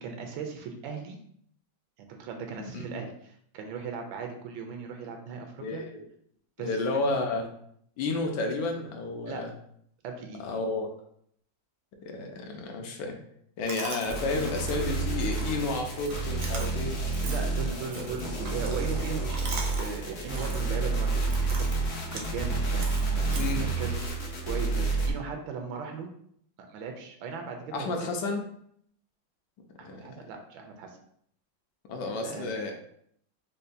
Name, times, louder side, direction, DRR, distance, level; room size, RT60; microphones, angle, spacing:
voice 1, 0.0-1.2 2.0-5.8 6.6-6.7 9.3-9.4 10.0-10.4 17.2-26.1 26.7-28.1 29.8-31.0 32.2-32.5, right 5 dB, 90° right, 4 dB, 1.4 m, -38 dB
voice 2, 5.6-6.0 6.6-7.5 8.0-9.5 10.4-10.9 12.0-13.2 13.6-17.0 18.0-18.2 23.3-23.6 27.7-28.4 29.8-30.1 31.9-32.7, left 3 dB, 70° left, 3 dB, 1.2 m, -31 dB
Chewing mastication, 13.7-24.1, right 3 dB, 65° right, 0.8 m, -42 dB
sound 1, 14.1-25.1, right 3 dB, 85° left, 0.5 m, -30 dB
5.3 x 2.2 x 2.6 m, 0.68 s
omnidirectional pair, 2.1 m